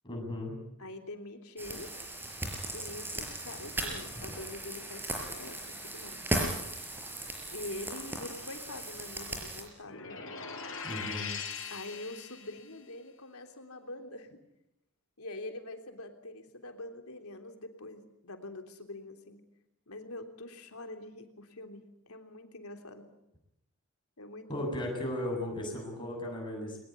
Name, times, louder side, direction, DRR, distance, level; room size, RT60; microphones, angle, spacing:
voice 1, 0.0-0.6 10.8-11.3 24.5-26.8, left 1 dB, 20° left, 1 dB, 7.9 m, -36 dB
voice 2, 0.8-2.0 2.7-6.2 7.5-10.2 11.7-14.4 15.2-19.4 19.9-23.1 24.2-24.8, left 2 dB, 80° left, 5 dB, 3.4 m, -44 dB
sound 1, 1.6-9.6, right 1 dB, 10° right, 5.5 m, -37 dB
sound 2, 9.8-12.6, left 5 dB, 60° left, 5.5 m, -40 dB
23.0 x 21.5 x 9.6 m, 0.83 s
head